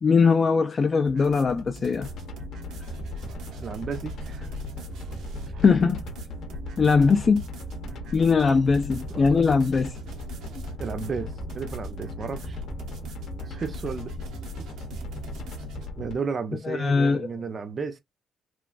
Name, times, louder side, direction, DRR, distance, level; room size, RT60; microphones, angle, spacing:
voice 1, 0.0-2.1 5.6-6.1 6.8-7.4 8.1-9.9 16.7-17.3, left 5 dB, 35° left, 0.3 m, -21 dB
sound 1, 1.0-15.9, right 1 dB, 80° right, 0.8 m, -44 dB
sound 2, 2.0-16.1, left 1 dB, 65° left, 0.7 m, -37 dB
voice 2, 3.6-4.5 5.5-5.6 9.1-9.5 10.8-12.6 13.5-14.1 16.0-18.0, right 5 dB, 35° right, 0.5 m, -33 dB
3.0 x 2.4 x 2.3 m
cardioid pair, 145°, 0 cm